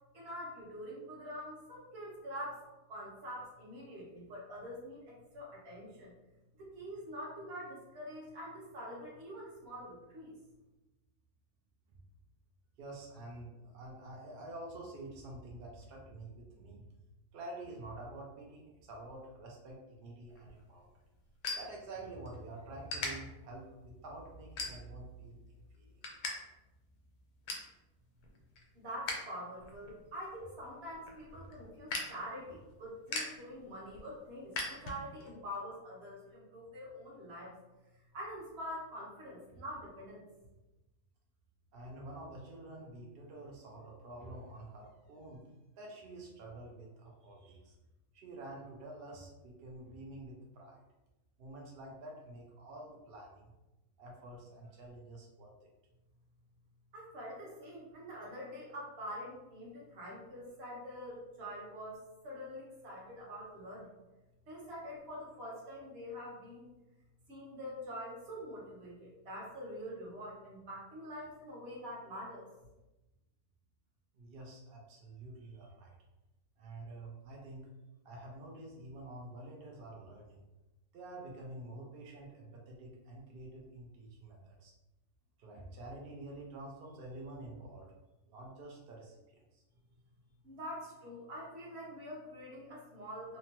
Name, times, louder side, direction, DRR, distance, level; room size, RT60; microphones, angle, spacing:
voice 1, 0.1-2.6 2.9-6.1 6.6-10.4 28.7-37.6 38.1-40.2 56.9-63.9 64.5-66.7 67.3-72.5 90.4-93.4, equal, 50° right, -4 dB, 1.0 m, -45 dB
voice 2, 12.8-16.9 17.3-20.9 21.6-25.4 25.7-26.0 41.7-45.5 45.8-47.7 48.1-50.8 51.4-53.5 54.0-55.5 74.2-76.0 76.6-77.7 78.0-80.4 80.9-84.7 85.4-87.9 88.2-89.6, right 2 dB, 75° right, -1 dB, 0.5 m, -48 dB
sound 1, 20.3-22.4 22.9-23.1 23.7-23.9 24.6-25.1 25.5-26.3 26.6-26.7 27.1-27.7 28.2-29.3 29.6-35.3, left 3 dB, 85° left, 1.1 m, -41 dB
2.9 x 2.1 x 2.8 m, 1.0 s
omnidirectional pair, 1.6 m